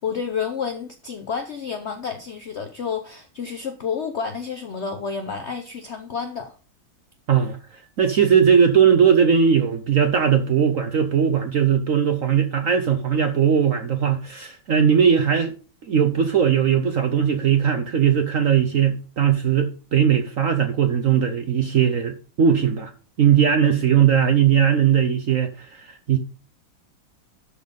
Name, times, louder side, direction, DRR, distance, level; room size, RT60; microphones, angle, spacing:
voice 1, 0.0-6.5, left 6 dB, 65° left, 0.6 m, -30 dB
voice 2, 8.0-15.5 15.9-22.9 23.2-26.2, right 8 dB, 65° right, 0.8 m, -19 dB
12.5 x 4.2 x 5.3 m
omnidirectional pair, 2.3 m